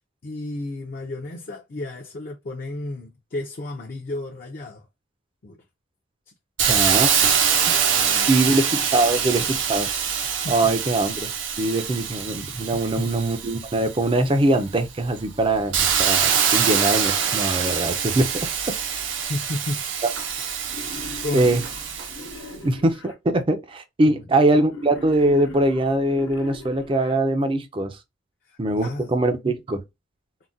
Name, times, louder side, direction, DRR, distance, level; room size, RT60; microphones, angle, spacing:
voice 1, 0.2-4.9 5.4-5.6 7.2-8.6 10.4-10.7 12.7-13.1 19.3-19.9 21.2-21.6 22.5-22.7 24.0-24.2 28.4-29.1, left 2 dB, 45° left, 0.5 m, -33 dB
Hiss, 6.6-14.2 14.7-22.4, right 7 dB, 70° right, 0.6 m, -24 dB
voice 2, 6.7-7.1 7.7-7.8 8.3-9.9 10.5-11.3 11.6-18.3 21.3-21.6 22.6-28.0 28.6-29.8, right 2 dB, 25° right, 0.4 m, -22 dB
Wild animals, 20.7-23.1 24.7-27.1, left 3 dB, 75° left, 0.8 m, -40 dB
3.8 x 2.1 x 2.4 m
head